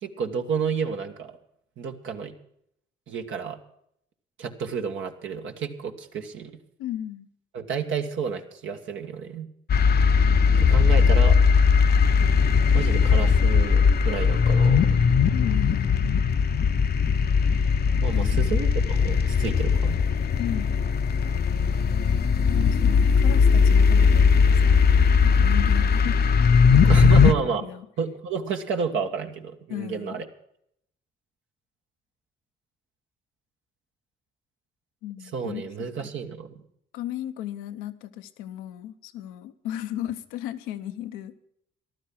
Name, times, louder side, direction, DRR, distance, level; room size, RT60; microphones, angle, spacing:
voice 1, 0.0-1.3 1.8-2.3 3.1-3.6 4.4-6.5 7.5-9.5 10.6-11.4 12.7-15.1 18.0-20.0 26.9-27.7 28.0-30.3 35.3-36.6, right 6 dB, 70° right, 4 dB, 1.5 m, -30 dB
voice 2, 6.8-7.3 15.3-16.3 18.1-18.6 20.4-20.8 22.5-24.9 25.2-26.2 26.7-27.9 29.7-30.3 35.0-36.1 36.9-41.4, left 12 dB, 90° left, 9 dB, 0.8 m, -35 dB
sound 1, 9.7-27.3, left 6 dB, 50° left, 0.7 m, -19 dB
14.0 x 12.0 x 5.8 m, 0.72 s
supercardioid pair, 50°, 21 cm